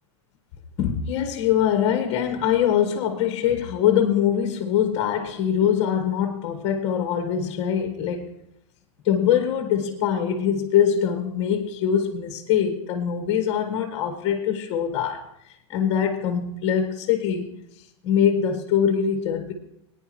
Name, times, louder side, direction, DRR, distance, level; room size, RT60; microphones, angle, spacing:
voice 1, 0.8-8.3 9.0-15.3 15.7-17.5 18.0-19.5, left 9 dB, 40° left, 1.6 m, -23 dB
19.5 x 9.8 x 3.1 m
supercardioid pair, 145°, 16 cm